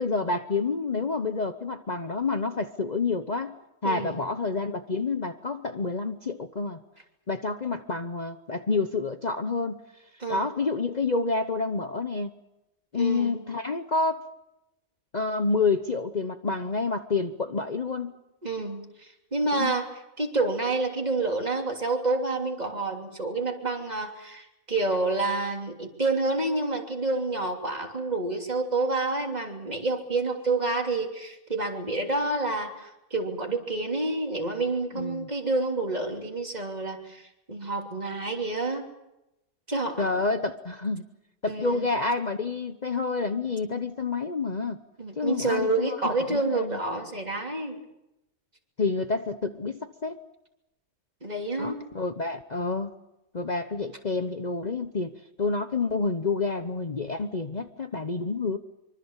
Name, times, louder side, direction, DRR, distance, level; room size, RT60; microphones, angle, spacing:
voice 1, 0.0-3.5 3.8-6.8 7.3-9.8 10.3-12.3 12.9-14.2 15.1-18.2 19.5-19.8 34.9-35.3 40.0-41.0 41.4-44.8 45.2-46.8 48.8-50.2 51.6-52.9 53.3-58.6, left 4 dB, 35° left, 8 dB, 1.1 m, -28 dB
voice 2, 3.8-4.1 10.2-10.5 12.9-13.4 18.4-19.9 20.2-38.9 39.7-40.1 41.5-41.9 45.0-47.8 51.2-51.8, right 2 dB, 35° right, 3 dB, 3.3 m, -28 dB
25.0 x 24.5 x 7.4 m, 0.91 s
omnidirectional pair, 1.3 m